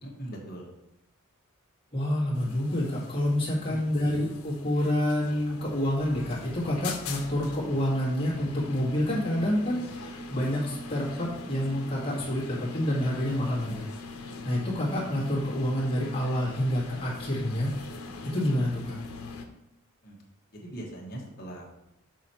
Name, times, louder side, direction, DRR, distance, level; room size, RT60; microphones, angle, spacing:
voice 1, 0.0-0.7 3.7-3.8 20.0-20.2 20.5-21.7, right 1 dB, 45° left, -2 dB, 1.4 m, -40 dB
voice 2, 1.9-13.8 14.4-17.7 18.3-19.0, left 1 dB, 25° left, -6 dB, 1.8 m, -28 dB
sound 1, 2.3-19.5, left 3 dB, 85° left, 0.8 m, -42 dB
6.3 x 4.2 x 4.4 m, 0.84 s
head